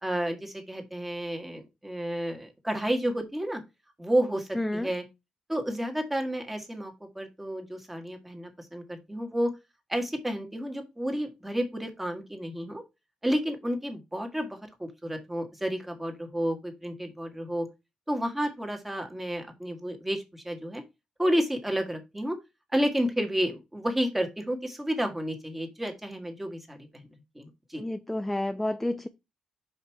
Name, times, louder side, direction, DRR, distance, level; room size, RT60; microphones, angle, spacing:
voice 1, 0.0-3.6 4.0-5.0 5.5-9.5 9.9-12.8 13.2-17.7 18.1-20.8 21.2-22.4 22.7-27.1 27.3-27.8, equal, 10° right, 1.7 m, -31 dB
voice 2, 4.5-4.9 27.8-29.1, left 1 dB, 5° left, 0.5 m, -30 dB
5.9 x 5.4 x 4.7 m
cardioid pair, 135°, 2 cm